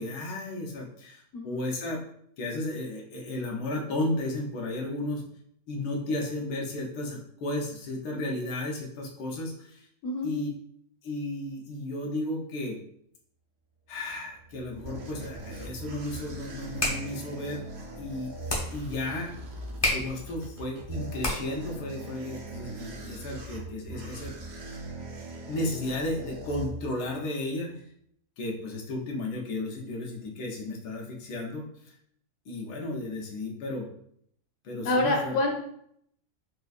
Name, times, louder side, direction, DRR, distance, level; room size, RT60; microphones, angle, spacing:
voice 1, 0.0-2.0 2.4-5.2 5.7-9.9 10.2-10.5 11.0-12.8 13.9-17.6 18.0-18.3 18.7-19.3 19.9-24.3 25.5-27.8 28.4-31.9 32.5-33.9 34.6-35.4, left 2 dB, 85° left, -1 dB, 1.3 m, -33 dB
sound 1, 14.4-27.2, right 2 dB, 60° right, 0.7 m, -41 dB
sound 2, 16.5-21.7, left 1 dB, 30° left, 0.4 m, -33 dB
voice 2, 34.8-35.5, left 2 dB, 55° left, -1 dB, 1.0 m, -26 dB
4.4 x 2.4 x 2.3 m, 0.68 s
omnidirectional pair, 1.7 m